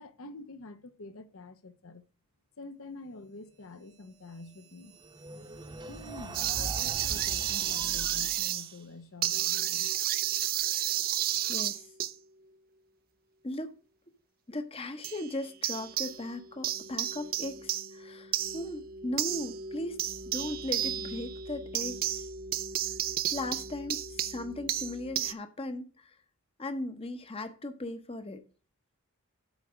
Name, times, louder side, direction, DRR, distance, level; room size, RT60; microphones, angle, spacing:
voice 1, 0.0-2.0 2.6-5.0 5.9-9.9, left 2 dB, 70° left, 0.8 m, -47 dB
sound 1, 4.3-8.8, right 2 dB, 20° right, 0.9 m, -41 dB
sound 2, 6.3-8.7 9.2-12.1 15.0-15.3 15.6-16.4 16.6-25.3, right 12 dB, 40° right, 0.5 m, -32 dB
voice 2, 11.5-11.9 13.4-13.8 14.5-22.3 23.3-26.2 26.6-28.4, left 1 dB, 25° left, 0.8 m, -38 dB
8.1 x 4.5 x 6.3 m
head